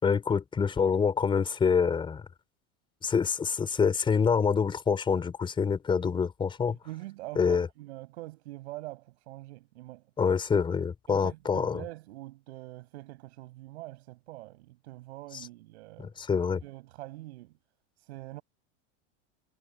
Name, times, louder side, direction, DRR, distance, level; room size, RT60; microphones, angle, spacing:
voice 1, 0.0-2.2 3.0-6.8 7.4-7.7 10.2-11.8 16.0-16.6, left 6 dB, 15° left, 5.2 m, -26 dB
voice 2, 6.7-10.1 11.1-16.1 16.6-17.6 18.0-18.4, right 18 dB, 70° right, 7.5 m, -44 dB
supercardioid pair, 165°, 34 cm